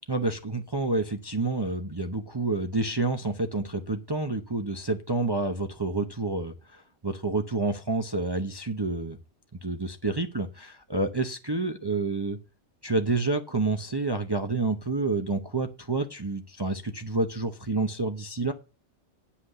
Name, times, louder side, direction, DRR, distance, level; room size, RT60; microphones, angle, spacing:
voice 1, 0.1-9.2 9.5-12.4 12.8-18.5, right 3 dB, 25° right, 0.8 m, -29 dB
9.8 x 5.9 x 6.7 m
omnidirectional pair, 1.2 m